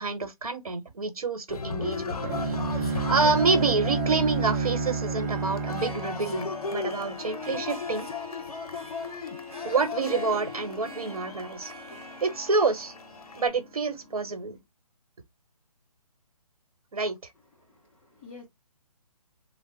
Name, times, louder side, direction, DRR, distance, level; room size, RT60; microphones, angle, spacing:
voice 1, 0.0-2.1 2.5-8.1 9.6-11.7 12.2-12.9 13.3-14.6 16.9-17.2, right 4 dB, 70° right, 1.0 m, -28 dB
Cheering, 1.5-13.5, left 4 dB, 75° left, 0.6 m, -36 dB
Bowed string instrument, 2.2-7.2, right 4 dB, 25° right, 0.7 m, -30 dB
Harp, 5.8-14.5, left 3 dB, 5° right, 1.3 m, -42 dB
voice 2, 17.5-18.5, left 4 dB, 10° left, 0.5 m, -49 dB
3.4 x 2.0 x 2.7 m
figure-of-eight pair, 150°, 19 cm